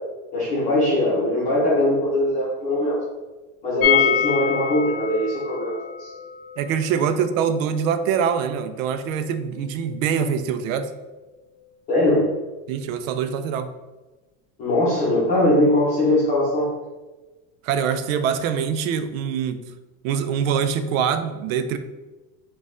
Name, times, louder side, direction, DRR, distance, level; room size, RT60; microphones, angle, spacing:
voice 1, 0.3-3.0 3.6-6.1 11.9-12.2 14.6-16.7, left 1 dB, 20° left, -9 dB, 0.8 m, -21 dB
sound 1, 3.8-9.6 9.8-9.9 10.2-10.3, left 9 dB, 70° left, 0.6 m, -26 dB
voice 2, 6.6-10.9 12.7-13.7 17.6-19.6 20.0-21.8, right 7 dB, 75° right, 10 dB, 0.5 m, -24 dB
4.2 x 2.4 x 3.7 m, 1.2 s
supercardioid pair, 160°, 40 cm